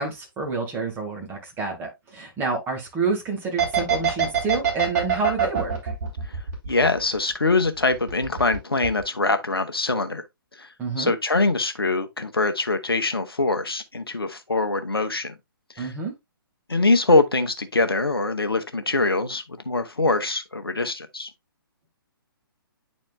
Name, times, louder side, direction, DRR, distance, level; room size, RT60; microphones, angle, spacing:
voice 1, 0.0-5.9 10.8-11.1 15.8-16.1, right 3 dB, 15° right, 1.9 m, -28 dB
sound 1, 3.6-7.3 7.6-8.6 8.8-9.0, right 8 dB, 45° right, 3.1 m, -23 dB
voice 2, 6.7-10.2 10.6-10.7 11.0-15.3 15.8-15.9 16.7-21.3, left 3 dB, 80° left, 1.0 m, -23 dB
10.5 x 4.2 x 2.3 m
figure-of-eight pair, 130°, 12 cm